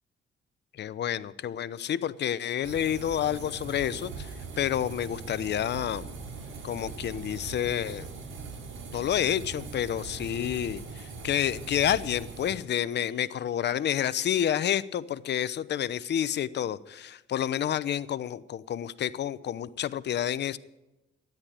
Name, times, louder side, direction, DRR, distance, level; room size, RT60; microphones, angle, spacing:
voice 1, 0.7-6.1 6.6-8.1 8.9-20.6, left 10 dB, 60° left, 16 dB, 0.8 m, -29 dB
sound 1, 2.6-12.5, right 4 dB, 85° right, 4.8 m, -41 dB
13.0 x 10.5 x 9.1 m, 0.98 s
cardioid pair, 90°, 20 cm